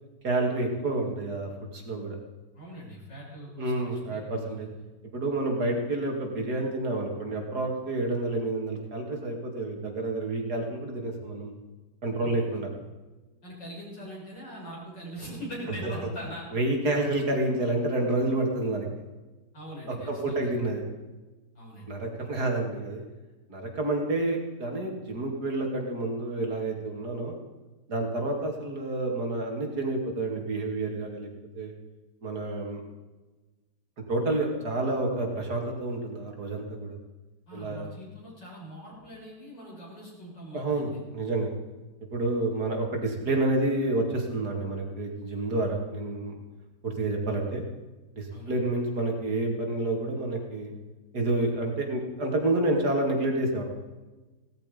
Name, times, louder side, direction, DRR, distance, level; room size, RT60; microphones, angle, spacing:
voice 1, 0.2-2.2 3.6-4.7 5.1-11.5 12.0-12.7 15.8-15.9 16.5-18.9 20.1-20.8 21.9-23.0 23.5-27.4 27.9-31.3 31.5-31.7 32.2-32.8 34.1-36.9 37.5-37.9 40.5-41.5 42.1-46.4 46.8-47.6 48.2-50.7 51.1-53.6, right 2 dB, 65° right, 1 dB, 3.1 m, -29 dB
voice 2, 2.5-4.7 12.2-12.5 13.4-16.4 19.5-20.5 21.6-21.9 37.5-41.0 48.3-48.6, equal, 90° left, -4 dB, 7.3 m, -42 dB
17.5 x 13.5 x 5.3 m, 1.2 s
omnidirectional pair, 1.9 m